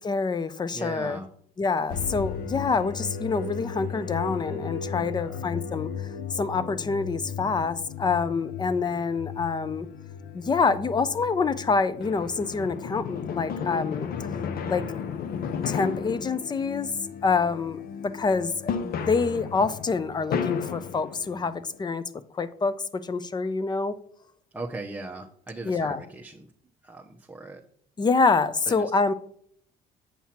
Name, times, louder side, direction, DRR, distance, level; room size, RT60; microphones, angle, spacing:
voice 1, 0.0-1.2 1.6-5.9 6.3-9.9 10.3-14.1 14.7-15.0 15.7-16.9 17.2-22.0 22.3-24.0 25.7-26.0 28.0-29.1, left 4 dB, 25° left, 15 dB, 0.6 m, -26 dB
voice 2, 0.7-1.3 5.2-5.4 24.5-26.5 26.8-27.6 28.7-28.9, right 2 dB, 10° right, -1 dB, 0.9 m, -38 dB
sound 1, 1.9-21.8, left 6 dB, 60° left, 0.9 m, -34 dB
8.5 x 5.7 x 4.4 m, 0.63 s
cardioid pair, 110°, 17 cm